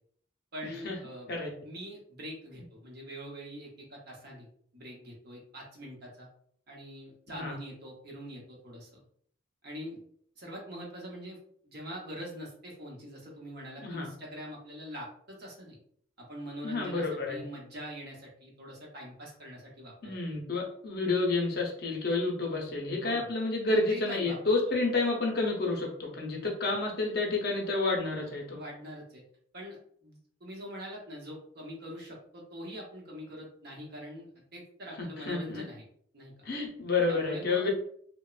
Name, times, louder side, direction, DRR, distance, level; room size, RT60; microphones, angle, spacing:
voice 1, 0.5-4.5 4.7-6.3 6.7-9.0 9.6-10.0 10.4-11.4 11.6-15.8 16.2-20.1 23.0-23.3 23.7-24.4 26.4-26.5 28.6-29.2 29.5-35.8 36.1-36.3 37.1-37.7, equal, 50° right, -2 dB, 0.8 m, -44 dB
voice 2, 16.6-17.4 20.0-28.6 35.0-35.6 36.4-37.7, left 3 dB, 50° left, 0 dB, 0.6 m, -30 dB
3.0 x 2.1 x 2.3 m, 0.62 s
head